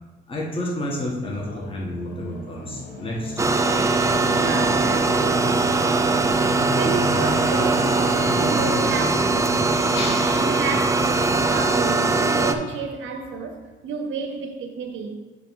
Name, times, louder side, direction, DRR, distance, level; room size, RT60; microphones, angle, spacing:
voice 1, 0.3-3.3, left 1 dB, 25° left, 1.5 m, -30 dB
sound 1, 1.2-12.6, left 1 dB, 45° left, 1.5 m, -34 dB
sound 2, 3.4-12.5, right 3 dB, 15° right, 0.5 m, -21 dB
voice 2, 4.3-6.5 6.7-15.2, right 5 dB, 75° right, 0.7 m, -31 dB
sound 3, 9.4-11.9, left 2 dB, 65° left, 2.2 m, -39 dB
7.8 x 3.2 x 5.4 m
cardioid pair, 90°, 20 cm